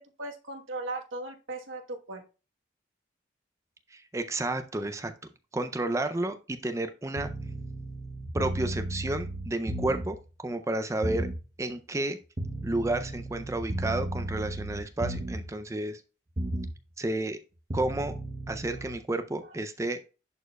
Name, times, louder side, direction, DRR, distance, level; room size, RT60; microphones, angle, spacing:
voice 1, 0.2-2.2, right 2 dB, 85° right, 3 dB, 1.2 m, -37 dB
voice 2, 3.9-5.1 5.5-7.3 8.3-10.2 10.4-11.3 11.6-12.2 12.6-16.0 17.0-17.4 17.7-18.1 18.5-20.0, right 2 dB, 15° right, 8 dB, 0.4 m, -31 dB
sound 1, 7.1-10.2 11.0-11.4 12.4-15.5 16.4-16.8 17.7-18.9, right 1 dB, 35° right, 0.8 m, -34 dB
11.0 x 4.4 x 2.2 m, 0.33 s
head